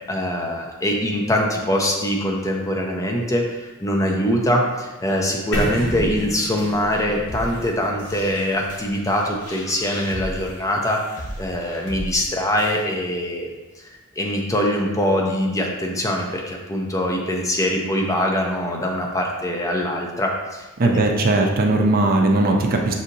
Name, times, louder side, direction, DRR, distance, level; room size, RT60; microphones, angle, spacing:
voice 1, 0.1-13.5 13.8-13.9 14.2-20.9, equal, 15° left, 0 dB, 0.5 m, -23 dB
sound 1, 5.5-9.5, equal, 60° left, 0.9 m, -31 dB
sound 2, 5.9-12.8, equal, 85° left, 1.1 m, -36 dB
voice 2, 20.8-22.9, right 2 dB, 45° right, 2 dB, 0.5 m, -18 dB
6.1 x 2.7 x 2.6 m, 1.2 s
head